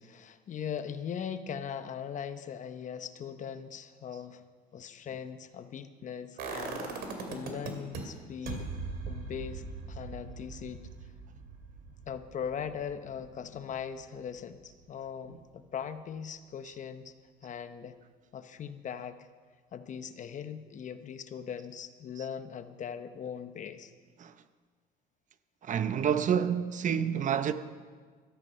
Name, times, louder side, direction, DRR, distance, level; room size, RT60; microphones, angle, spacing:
voice 1, 0.0-4.4 4.7-8.7 9.1-10.9 12.1-17.1 17.4-18.0 18.3-19.3 19.7-23.9, left 8 dB, 45° left, 0.9 m, -40 dB
sound 1, 6.4-8.0 8.5-14.3 14.6-14.7, right 5 dB, 65° right, 2.6 m, -41 dB
voice 2, 25.7-27.5, right 8 dB, 50° right, 0.7 m, -28 dB
13.5 x 13.5 x 5.7 m
cardioid pair, 110°, 17 cm